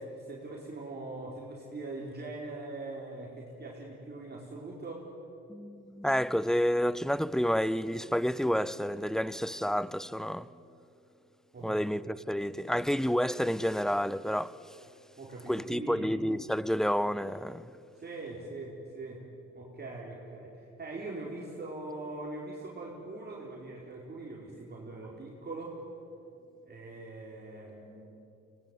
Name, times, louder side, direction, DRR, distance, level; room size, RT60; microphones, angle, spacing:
voice 1, 0.0-5.1 11.5-11.8 15.2-16.2 17.9-19.2 19.5-25.8 26.6-28.1, right 2 dB, 35° right, 4.6 m, -42 dB
voice 2, 5.5-10.5 11.6-14.6 15.5-17.7, equal, ahead, 0.6 m, -29 dB
24.5 x 19.5 x 9.6 m
cardioid pair, 90°, 30 cm